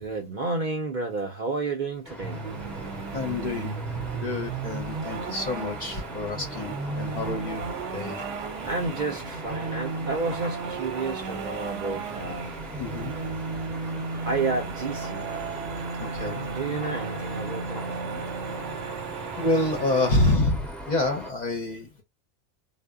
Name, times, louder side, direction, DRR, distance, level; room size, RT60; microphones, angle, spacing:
voice 1, 0.0-2.5 8.7-12.6 14.2-15.3 16.4-18.0, right 3 dB, 55° right, 0.6 m, -31 dB
sound 1, 2.0-21.3, equal, ahead, 0.5 m, -41 dB
sound 2, 2.2-20.4, right 4 dB, 85° right, 0.9 m, -34 dB
voice 2, 3.1-8.2 12.8-13.2 15.3-15.7 16.0-16.5 19.4-22.0, left 2 dB, 50° left, 0.6 m, -28 dB
sound 3, 6.4-12.8 13.4-20.5, left 1 dB, 20° left, 0.9 m, -47 dB
2.0 x 2.0 x 3.5 m
omnidirectional pair, 1.2 m